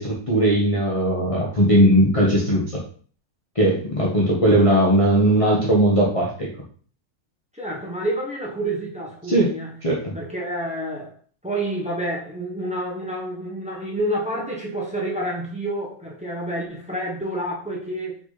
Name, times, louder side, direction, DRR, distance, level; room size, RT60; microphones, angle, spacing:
voice 1, 0.0-2.8 3.5-6.5 9.3-9.5 9.8-10.1, right 1 dB, 25° left, -4 dB, 1.2 m, -18 dB
voice 2, 7.5-9.7 10.1-11.1 11.4-18.1, right 1 dB, 5° right, -3 dB, 1.5 m, -28 dB
5.8 x 4.2 x 4.1 m, 0.44 s
omnidirectional pair, 1.6 m